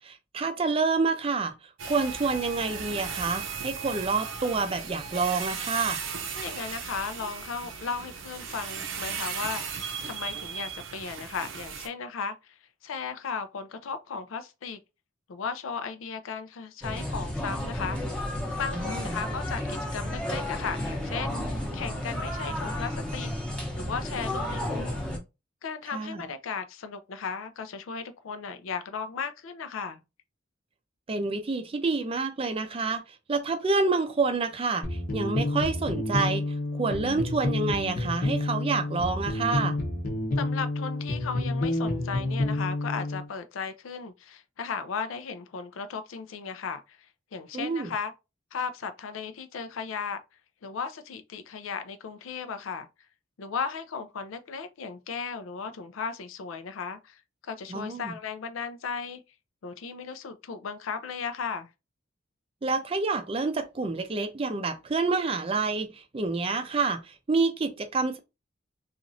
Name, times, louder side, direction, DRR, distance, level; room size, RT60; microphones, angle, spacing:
voice 1, 0.0-1.5 1.8-6.0 18.7-19.2 25.9-26.2 31.1-33.0 33.3-36.4 36.7-39.8 47.5-47.9 57.7-58.1 62.6-68.2, right 4 dB, 30° right, 0.4 m, -28 dB
sound 1, 1.8-11.9, right 6 dB, 75° right, 0.6 m, -36 dB
voice 2, 6.4-14.8 15.3-18.2 18.6-23.3 23.8-25.1 25.6-30.0 40.4-47.0 47.3-48.1 48.5-50.2 50.6-52.9 53.4-59.2 59.6-61.7, left 5 dB, 90° left, 0.4 m, -36 dB
sound 2, 16.8-25.2, left 1 dB, 5° left, 0.7 m, -32 dB
sound 3, 34.8-43.3, left 2 dB, 45° left, 0.7 m, -29 dB
3.0 x 2.4 x 2.5 m
head